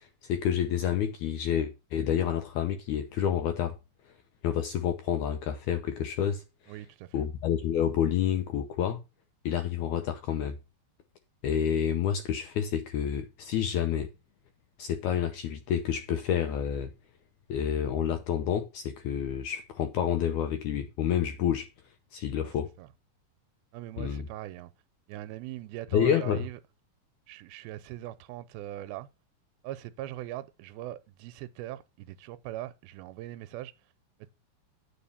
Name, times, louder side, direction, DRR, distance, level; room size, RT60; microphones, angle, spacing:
voice 1, 0.0-3.7 4.4-6.4 7.1-9.0 9.5-10.6 11.4-14.1 14.8-16.9 17.5-21.7 22.1-22.7 24.0-24.3 25.9-26.5, left 9 dB, 80° left, 1.7 m, -29 dB
voice 2, 6.7-7.2 22.4-22.5 22.8-22.9 23.7-24.7 25.1-26.6 27.3-29.1 29.6-33.7, right 14 dB, 90° right, 2.5 m, -41 dB
9.1 x 4.2 x 7.0 m
omnidirectional pair, 4.2 m